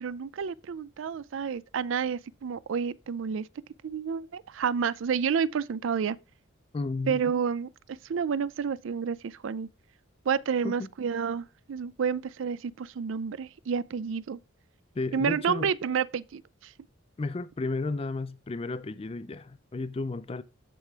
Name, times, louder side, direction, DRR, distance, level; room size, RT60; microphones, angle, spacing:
voice 1, 0.0-3.5 3.8-6.2 7.1-9.7 10.3-14.4 15.1-16.7, right 6 dB, 65° right, 0.4 m, -30 dB
voice 2, 6.7-7.2 10.6-10.9 15.0-15.7 17.2-20.4, left 3 dB, 30° left, 0.4 m, -33 dB
14.0 x 4.9 x 2.4 m
head